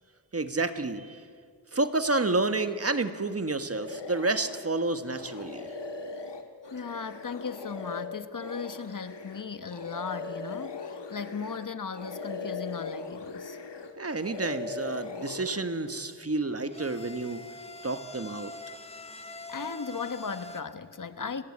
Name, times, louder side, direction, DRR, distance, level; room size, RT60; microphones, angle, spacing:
voice 1, 0.3-1.2 1.7-5.7 14.0-17.4 17.8-18.5, right 2 dB, 35° right, 10 dB, 1.5 m, -29 dB
sound 1, 3.7-4.7 5.1-11.7 11.9-13.9 14.2-15.6, left 3 dB, 75° left, 1.9 m, -39 dB
voice 2, 6.7-13.6 19.5-21.4, left 5 dB, 45° left, 11 dB, 1.3 m, -37 dB
sound 2, 16.3-20.6, left 2 dB, 15° left, 1.6 m, -44 dB
29.5 x 18.0 x 8.7 m, 2.1 s
wide cardioid pair, 100°, 42 cm